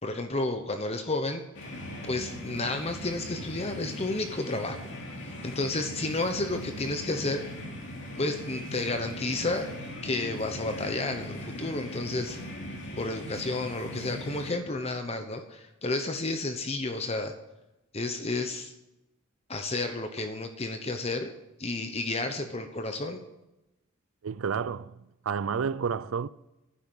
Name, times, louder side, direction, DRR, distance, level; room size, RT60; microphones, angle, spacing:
voice 1, 0.0-1.4 2.0-4.8 5.2-7.4 8.2-9.7 10.0-12.4 12.9-17.3 17.9-18.7 19.5-21.3 21.6-23.2, left 2 dB, 30° left, 1.0 m, -31 dB
sound 1, 1.5-14.5, left 1 dB, 55° left, 3.0 m, -39 dB
voice 2, 24.2-24.9 25.3-26.3, right 6 dB, 70° right, 0.4 m, -30 dB
12.0 x 10.0 x 9.0 m
head